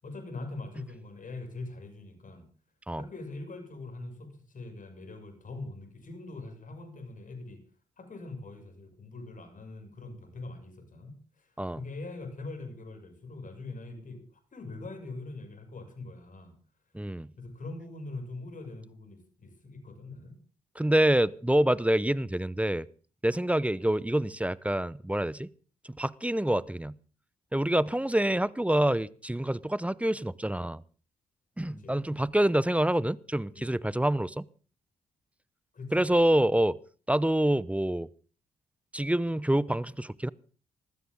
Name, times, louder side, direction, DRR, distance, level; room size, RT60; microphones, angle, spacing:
voice 1, 0.0-2.4 2.9-7.6 8.0-14.2 14.5-16.5 17.4-20.4 31.6-32.4 33.5-33.8 35.7-36.6, left 2 dB, 45° left, 6.5 m, -43 dB
voice 2, 16.9-17.3 20.8-22.8 23.2-25.5 26.0-26.9 27.5-30.8 31.6-34.5 35.9-36.8 37.1-38.1 38.9-40.3, right 1 dB, 5° right, 0.8 m, -26 dB
20.5 x 15.0 x 3.6 m
hypercardioid pair, 45°, 18 cm